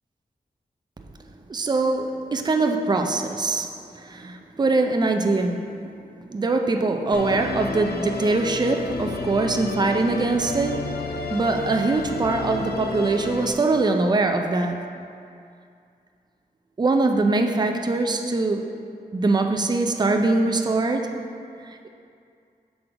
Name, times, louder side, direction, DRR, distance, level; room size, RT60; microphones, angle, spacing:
voice 1, 1.5-3.7 4.0-5.9 6.3-10.9 11.3-14.8 16.8-18.6 19.1-21.2, right 3 dB, 25° right, 4 dB, 0.4 m, -22 dB
Musical instrument, 7.1-13.5, left 4 dB, 80° left, 0.5 m, -31 dB
6.1 x 3.6 x 4.9 m, 2.4 s
wide cardioid pair, 90°, 16 cm